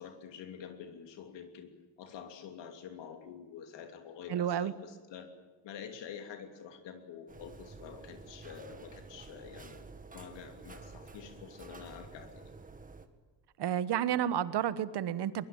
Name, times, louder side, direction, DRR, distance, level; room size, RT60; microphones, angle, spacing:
voice 1, 0.0-1.7 2.0-5.3 5.6-9.8 10.1-12.5, left 7 dB, 75° left, 6 dB, 3.1 m, -47 dB
voice 2, 4.3-4.7 13.6-15.4, right 10 dB, 65° right, 15 dB, 1.3 m, -31 dB
sound 1, 7.3-13.1, right 3 dB, 20° right, 1.8 m, -50 dB
23.0 x 22.5 x 9.1 m, 1.4 s
cardioid pair, 145°, 43 cm